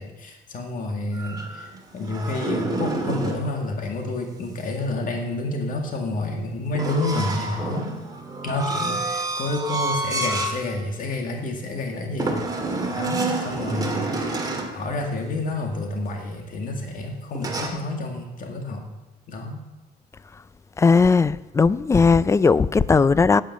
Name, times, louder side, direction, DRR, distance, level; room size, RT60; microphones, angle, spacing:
voice 1, 0.0-7.9 8.4-18.9 19.3-19.6, left 2 dB, 55° left, 2.0 m, -29 dB
sound 1, 1.1-3.5 6.7-10.6 11.0-11.2 12.2-14.8 17.3-17.7, right 2 dB, 20° right, 2.0 m, -28 dB
voice 2, 20.8-23.4, left 4 dB, 15° left, 0.3 m, -17 dB
9.3 x 8.7 x 7.4 m
cardioid pair, 110°, 17 cm